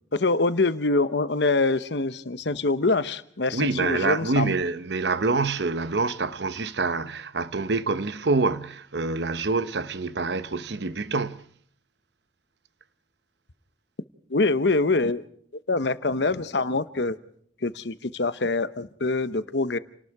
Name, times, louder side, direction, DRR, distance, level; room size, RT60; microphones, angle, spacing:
voice 1, 0.1-4.5 14.3-15.2 15.7-17.2 17.6-19.8, left 3 dB, 65° left, 1.0 m, -24 dB
voice 2, 3.5-11.5, right 3 dB, 65° right, 0.9 m, -26 dB
29.0 x 19.0 x 4.8 m
head